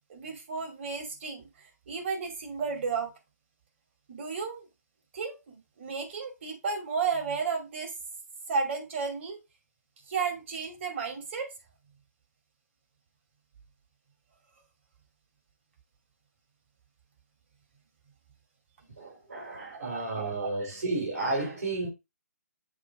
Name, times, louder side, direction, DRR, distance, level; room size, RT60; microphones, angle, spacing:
voice 1, 0.1-3.1 4.1-4.7 5.1-7.9 8.5-9.4 10.1-11.5 19.4-20.5, right 5 dB, 45° right, 2.5 m, -33 dB
voice 2, 19.0-21.9, right 2 dB, 70° right, 4.5 m, -32 dB
7.4 x 3.1 x 4.8 m
figure-of-eight pair, 135°, 9 cm